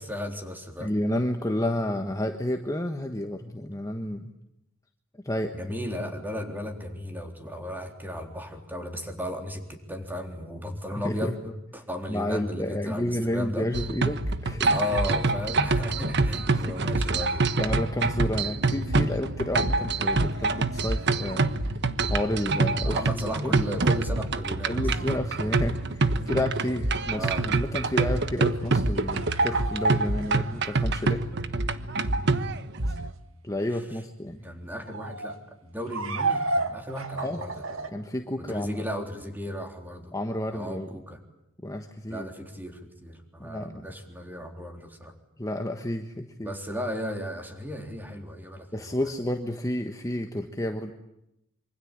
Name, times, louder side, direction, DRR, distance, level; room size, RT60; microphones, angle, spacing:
voice 1, 0.0-0.9 5.5-13.7 14.6-17.5 22.8-24.9 27.1-27.5 33.7-33.8 34.4-37.9 38.4-40.2 40.5-41.2 42.1-45.1 46.4-49.0, equal, 10° right, 4 dB, 3.7 m, -35 dB
voice 2, 0.8-4.2 5.2-5.5 11.0-11.3 12.1-14.7 16.5-16.8 17.6-21.4 22.1-23.0 23.4-23.6 24.7-31.2 33.4-34.4 37.2-37.4 37.9-38.8 40.1-40.9 41.6-42.3 43.4-43.9 45.4-46.5 48.7-50.9, left 1 dB, 15° left, 5 dB, 1.4 m, -30 dB
sound 1, 13.7-33.1, right 3 dB, 60° right, 1.3 m, -26 dB
sound 2, 28.1-30.5 32.8-33.1 34.8-35.3 35.9-37.9, right 3 dB, 80° right, 2.3 m, -32 dB
26.5 x 25.0 x 8.8 m, 0.86 s
head